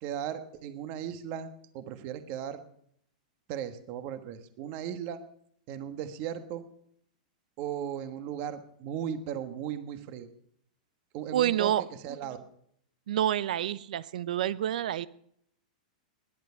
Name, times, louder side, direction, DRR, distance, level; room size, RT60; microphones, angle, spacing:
voice 1, 0.0-1.5 1.7-2.6 3.5-5.2 5.7-6.7 7.6-10.3 11.1-11.7 12.0-12.4, right 9 dB, 35° right, 10 dB, 1.3 m, -36 dB
voice 2, 11.3-11.8 13.1-15.1, right 11 dB, 70° right, 18 dB, 0.8 m, -28 dB
18.0 x 11.0 x 5.7 m, 0.68 s
supercardioid pair, 165°, 4 cm